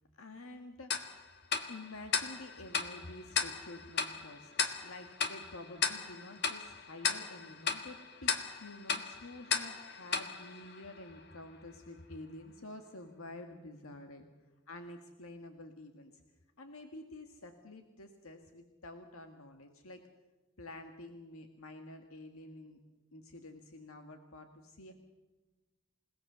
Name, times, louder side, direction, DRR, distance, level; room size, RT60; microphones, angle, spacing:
voice 1, 0.2-1.2 1.6-14.2 14.7-16.2 16.6-20.0 20.6-22.8 23.1-24.9, left 2 dB, 85° left, 5 dB, 1.7 m, -49 dB
Tick-tock, 0.9-11.4, left 6 dB, 50° left, 1.7 m, -37 dB
29.0 x 17.5 x 6.9 m, 1.2 s
head